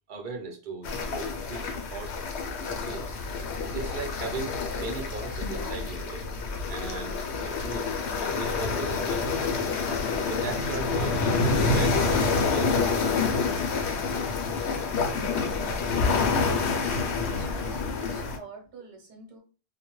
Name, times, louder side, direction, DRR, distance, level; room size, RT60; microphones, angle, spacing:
voice 1, 0.1-2.1 2.7-3.1 3.7-6.3 6.7-7.9 8.3-9.6 10.2-13.3, right 3 dB, 50° right, 2 dB, 0.7 m, -38 dB
sound 1, 0.8-18.4, left 4 dB, 75° left, 0.8 m, -28 dB
voice 2, 17.1-19.4, right 4 dB, 90° right, 3 dB, 1.1 m, -46 dB
2.2 x 2.2 x 2.9 m, 0.35 s
omnidirectional pair, 1.1 m